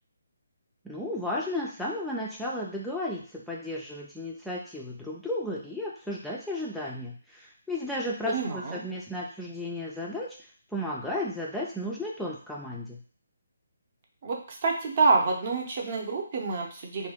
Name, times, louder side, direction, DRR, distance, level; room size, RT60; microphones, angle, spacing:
voice 1, 0.8-10.4 10.7-13.0, left 1 dB, ahead, -4 dB, 0.3 m, -34 dB
voice 2, 8.3-8.8 14.2-17.1, right 4 dB, 45° right, 1 dB, 0.7 m, -27 dB
2.5 x 2.2 x 3.5 m, 0.43 s
figure-of-eight pair, 145°, 0 cm